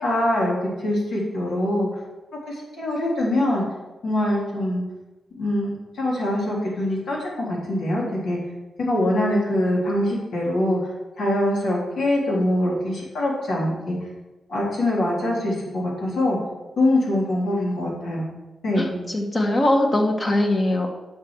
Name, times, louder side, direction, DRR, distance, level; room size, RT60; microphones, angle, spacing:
voice 1, 0.0-2.0 2.5-3.6 4.0-4.8 5.4-8.4 8.8-14.0 14.5-16.4 16.8-18.2 18.6-19.0, left 1 dB, 75° left, -4 dB, 3.4 m, -23 dB
voice 2, 18.8-20.9, left 1 dB, 35° left, 2 dB, 1.6 m, -21 dB
9.3 x 6.3 x 4.7 m, 1.1 s
cardioid pair, 100°, 0 cm